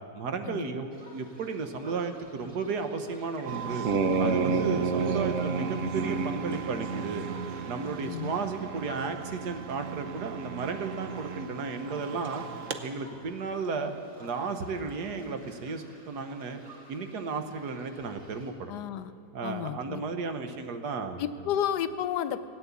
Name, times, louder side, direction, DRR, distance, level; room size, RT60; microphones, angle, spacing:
voice 1, 0.1-3.9 4.2-7.2 7.7-12.4 12.8-13.9 14.2-16.6 16.9-18.7 19.3-21.5, right 4 dB, 75° right, 7 dB, 1.6 m, -34 dB
sound 1, 0.9-18.5, right 1 dB, 25° right, 3.5 m, -53 dB
sound 2, 3.5-12.8, right 5 dB, 55° right, 1.1 m, -32 dB
voice 2, 8.0-8.3 18.7-19.1 19.4-20.0 21.2-22.5, left 10 dB, 80° left, 13 dB, 1.2 m, -31 dB
17.5 x 9.8 x 8.3 m, 2.5 s
omnidirectional pair, 1.8 m